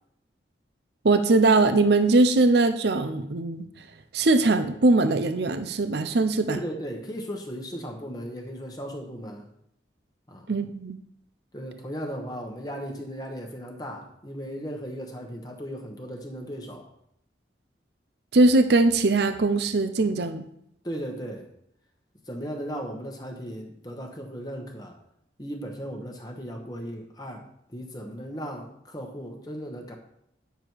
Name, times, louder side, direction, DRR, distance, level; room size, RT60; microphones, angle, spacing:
voice 1, 1.0-3.7 4.1-6.6 10.5-11.0 18.3-20.5, right 2 dB, 65° right, 10 dB, 0.6 m, -21 dB
voice 2, 6.5-9.5 10.3-10.5 11.5-16.9 20.8-21.4 22.3-25.0 25.4-29.9, equal, 20° left, 2 dB, 1.1 m, -36 dB
9.6 x 6.9 x 4.6 m, 0.76 s
head